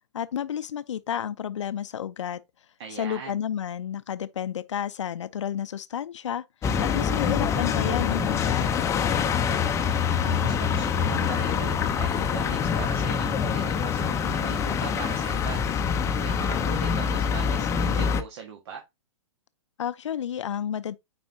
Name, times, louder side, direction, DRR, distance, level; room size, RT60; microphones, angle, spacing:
voice 1, 0.1-2.4 2.9-6.4 6.8-8.7 19.8-21.0, left 9 dB, 65° left, 0.6 m, -31 dB
voice 2, 2.8-3.4 10.2-15.6 16.2-18.8, right 6 dB, 55° right, 1.6 m, -39 dB
sound 1, 6.6-18.2, left 7 dB, 15° left, 0.7 m, -25 dB
8.9 x 4.2 x 2.8 m
figure-of-eight pair, 110°, 16 cm